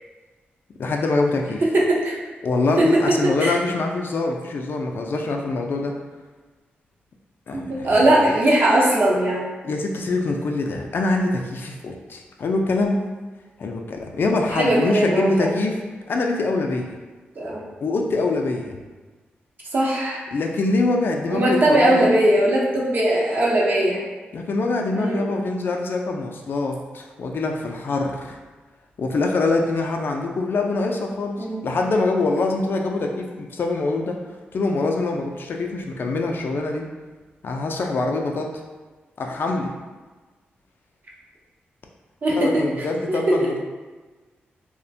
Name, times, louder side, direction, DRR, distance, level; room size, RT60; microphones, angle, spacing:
voice 1, 0.8-1.6 2.4-5.9 7.5-8.3 9.6-13.0 13.6-15.8 16.1-17.0 17.8-18.8 20.3-22.1 24.3-28.3 29.0-34.2 34.5-36.9 37.4-38.5 39.2-39.7 42.3-43.6, left 3 dB, 60° left, 2 dB, 0.3 m, -24 dB
voice 2, 1.7-2.1 2.8-3.5 7.5-9.5 14.5-15.5 17.4-17.7 19.7-20.2 21.3-24.0 24.9-25.6 31.4-31.6 42.2-43.4, right 1 dB, 50° right, -4 dB, 0.7 m, -20 dB
2.3 x 2.1 x 2.6 m, 1.3 s
cardioid pair, 60°, 4 cm